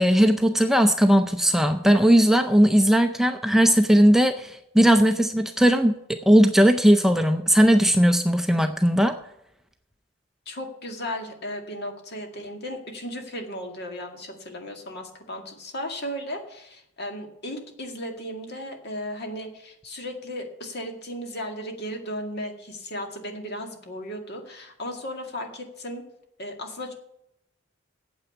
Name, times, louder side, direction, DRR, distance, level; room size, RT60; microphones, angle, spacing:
voice 1, 0.0-9.1, equal, ahead, 6 dB, 0.5 m, -18 dB
voice 2, 10.5-26.0 26.4-26.9, equal, 55° left, 3 dB, 2.1 m, -35 dB
8.9 x 7.9 x 8.3 m, 0.78 s
head